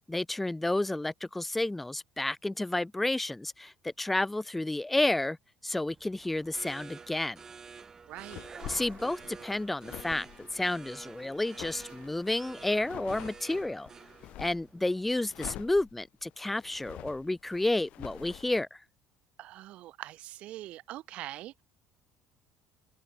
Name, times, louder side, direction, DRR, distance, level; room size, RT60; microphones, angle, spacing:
voice 1, 0.1-5.4 5.6-7.4 8.7-13.9 14.4-18.8, left 2 dB, 5° left, 0.3 m, -31 dB
sound 1, 5.9-15.4, right 5 dB, 20° right, 1.6 m, -50 dB
sound 2, 8.1-14.7 15.2-18.6, left 15 dB, 55° left, 3.1 m, -47 dB
voice 2, 8.1-8.5 19.4-21.6, right 15 dB, 50° right, 1.0 m, -43 dB
open air
cardioid pair, 165°, 3 cm